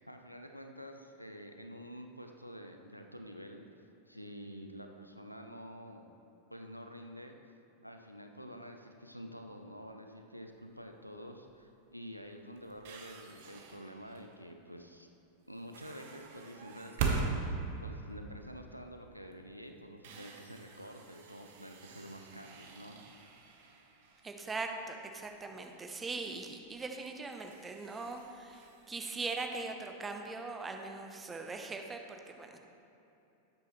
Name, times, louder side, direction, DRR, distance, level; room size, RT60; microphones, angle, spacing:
voice 1, 0.0-3.6 4.1-6.1 6.5-7.3 7.8-15.1 15.5-17.3 17.8-23.0, equal, 90° right, 4 dB, 0.6 m, -48 dB
sound 1, 10.5-10.9 11.5-11.7 12.0-14.5 15.5-18.9 19.3-19.4 19.8-25.3 25.6-25.7 26.6-26.8 27.2-29.0, right 4 dB, 55° right, 1.0 m, -41 dB
voice 2, 24.2-32.6, right 3 dB, 15° right, 4 dB, 0.8 m, -41 dB
12.0 x 8.2 x 3.1 m, 2.9 s
figure-of-eight pair, 90°, 0 cm